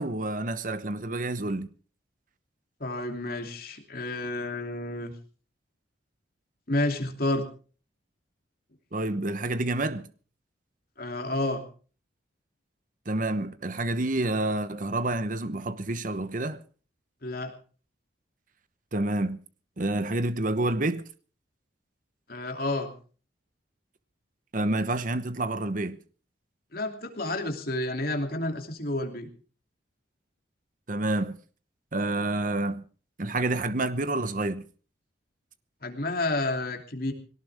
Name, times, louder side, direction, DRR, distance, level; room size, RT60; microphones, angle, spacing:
voice 1, 0.0-1.7 8.9-10.1 13.1-16.6 18.9-19.4 19.8-21.1 24.5-26.0 30.9-31.4 31.9-32.8 33.2-34.6, right 2 dB, 45° right, 1.0 m, -28 dB
voice 2, 2.8-5.1 6.7-7.4 11.0-11.7 17.2-17.5 22.3-22.9 26.7-29.3 35.8-37.1, left 2 dB, 50° left, 2.9 m, -30 dB
21.5 x 18.0 x 3.5 m
head